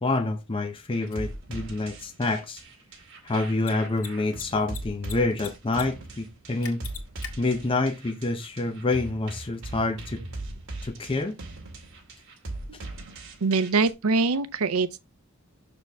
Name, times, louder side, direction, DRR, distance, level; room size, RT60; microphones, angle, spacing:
voice 1, 0.0-2.6 3.2-6.8 7.4-10.2 10.8-11.4, left 2 dB, 25° left, 0.7 m, -27 dB
sound 1, 0.9-13.9, right 2 dB, 65° right, 2.1 m, -40 dB
Mechanisms, 1.1-1.2 3.5-3.7 4.0-4.1 4.3-5.1 5.4-5.8 6.1-6.2 6.6-7.3, left 9 dB, 80° left, 2.1 m, -38 dB
voice 2, 13.4-15.0, right 4 dB, 85° right, 0.6 m, -24 dB
6.8 x 6.5 x 3.4 m
head